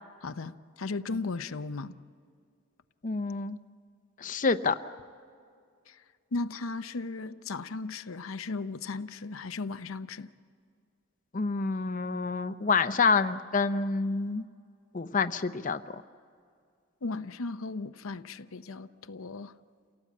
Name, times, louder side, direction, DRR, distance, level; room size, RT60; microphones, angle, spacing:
voice 1, 0.2-1.9 5.9-6.0 6.3-10.3 17.0-19.5, left 3 dB, 90° left, 10 dB, 0.7 m, -36 dB
voice 2, 3.0-3.6 4.2-4.7 11.3-14.4 14.9-16.0, left 4 dB, 40° left, 9 dB, 0.6 m, -27 dB
28.5 x 18.0 x 8.5 m, 2.2 s
head